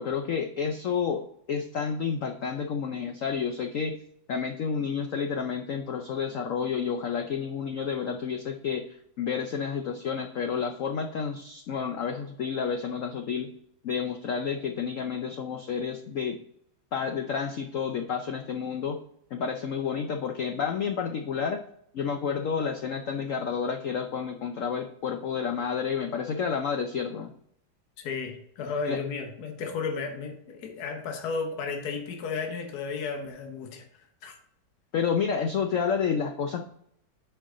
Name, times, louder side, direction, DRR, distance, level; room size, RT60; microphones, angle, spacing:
voice 1, 0.0-4.0 4.3-13.5 13.8-16.4 16.9-19.0 19.3-21.6 21.9-27.3 28.8-29.0 34.9-36.6, left 6 dB, 90° left, 5 dB, 0.7 m, -30 dB
voice 2, 28.0-33.8 34.2-34.3, left 5 dB, 55° left, 4 dB, 1.5 m, -33 dB
9.0 x 4.6 x 3.8 m, 0.72 s
omnidirectional pair, 2.1 m